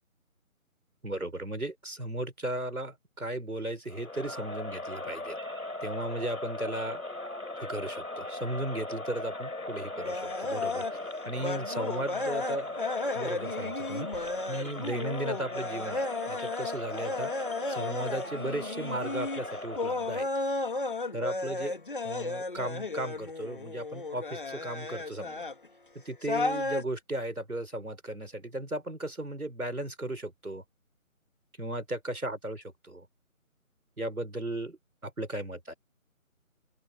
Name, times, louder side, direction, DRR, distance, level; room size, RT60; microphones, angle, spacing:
voice 1, 1.0-5.4 5.8-7.0 7.6-11.0 11.3-12.8 13.1-17.3 17.7-20.3 21.1-25.5 26.0-30.6 31.6-33.1 34.0-35.7, right 1 dB, 80° right, 4.4 m, -36 dB
Crowd, 3.9-20.2, left 2 dB, 75° left, 3.6 m, -39 dB
sound 1, 10.0-25.7 26.2-26.8, left 3 dB, 35° left, 1.9 m, -34 dB
open air
figure-of-eight pair, 160°, 43 cm